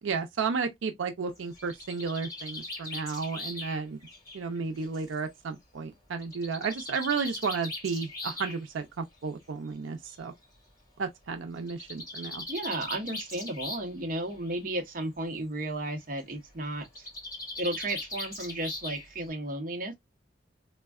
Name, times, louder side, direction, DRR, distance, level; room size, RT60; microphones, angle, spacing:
voice 1, 0.0-4.0 4.3-10.3 11.0-12.4, right 5 dB, 85° right, 0.4 m, -33 dB
Bird, 1.4-5.1 6.2-8.6 9.7-9.8 10.1-10.2 10.4-10.5 11.6-14.0 14.3-14.7 16.8-19.3, left 2 dB, 20° left, 1.7 m, -40 dB
voice 2, 12.5-17.1 17.6-19.9, right 1 dB, 45° right, 0.7 m, -34 dB
3.4 x 2.1 x 2.3 m
head